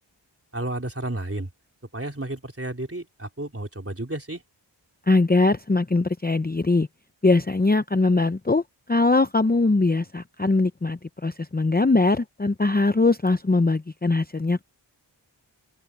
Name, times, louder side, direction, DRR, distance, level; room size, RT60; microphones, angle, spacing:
voice 1, 0.5-1.5 1.9-4.4, right 1 dB, 30° right, 4.0 m, -32 dB
voice 2, 5.1-6.9 7.2-8.6 8.9-14.6, left 3 dB, 20° left, 0.7 m, -21 dB
open air
wide cardioid pair, 45°, 46 cm